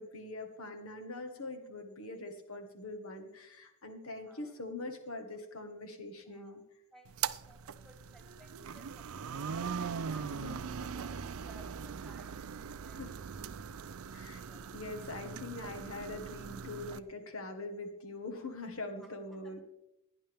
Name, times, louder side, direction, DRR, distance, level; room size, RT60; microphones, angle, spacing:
voice 1, 0.0-6.6 10.3-10.6 12.9-13.1 14.1-14.4 14.7-19.6, left 2 dB, 80° left, 5 dB, 1.5 m, -43 dB
voice 2, 4.1-4.5 6.3-6.6 6.9-13.0 19.0-19.6, equal, ahead, 2 dB, 1.9 m, -61 dB
sound 1, 7.1-17.0, right 6 dB, 80° right, 0.5 m, -40 dB
17.0 x 9.8 x 3.5 m, 0.87 s
head